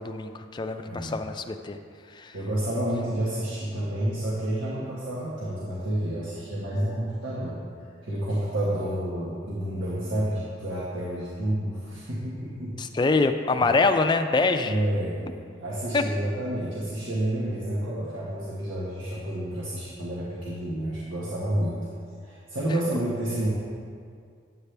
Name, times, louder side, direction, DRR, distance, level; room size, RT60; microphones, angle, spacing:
voice 1, 0.0-1.8 2.1-2.4 12.8-14.8 15.9-16.0, left 3 dB, 25° left, 7 dB, 0.4 m, -24 dB
voice 2, 0.8-1.2 2.3-7.6 8.0-12.7 13.6-13.7 14.7-15.2 15.6-21.8 22.2-23.5, right 1 dB, 85° right, -7 dB, 1.4 m, -29 dB
9.5 x 8.1 x 3.3 m, 2.1 s
head